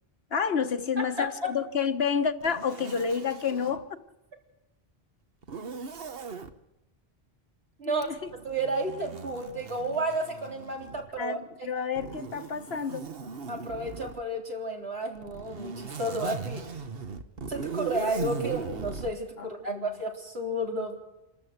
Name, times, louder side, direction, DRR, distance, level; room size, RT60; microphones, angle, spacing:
voice 1, 0.3-4.0 7.9-8.3 11.2-13.1 19.4-19.9, left 6 dB, 75° left, 10 dB, 1.4 m, -30 dB
voice 2, 1.0-1.5 7.8-8.1 8.4-11.4 13.5-16.8 17.5-20.9, right 1 dB, 85° right, 1 dB, 4.0 m, -32 dB
Zipper (clothing), 2.4-3.8 5.4-6.5 7.9-11.2 12.0-14.2 15.2-19.1, right 5 dB, 65° right, 1.3 m, -39 dB
27.0 x 13.0 x 8.1 m, 0.98 s
omnidirectional pair, 1.0 m